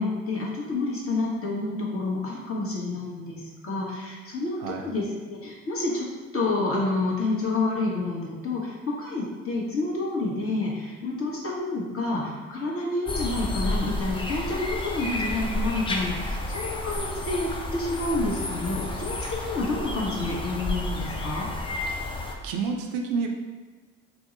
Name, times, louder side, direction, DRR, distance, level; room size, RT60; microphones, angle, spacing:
voice 1, 0.0-4.6 4.8-6.1 6.3-21.5, left 2 dB, 35° left, -3 dB, 1.0 m, -29 dB
sound 1, 13.1-22.3, left 1 dB, 15° left, 0.4 m, -31 dB
voice 2, 22.4-23.3, right 5 dB, 60° right, 2 dB, 0.5 m, -28 dB
2.7 x 2.0 x 3.8 m, 1.4 s
hypercardioid pair, 55°, 38 cm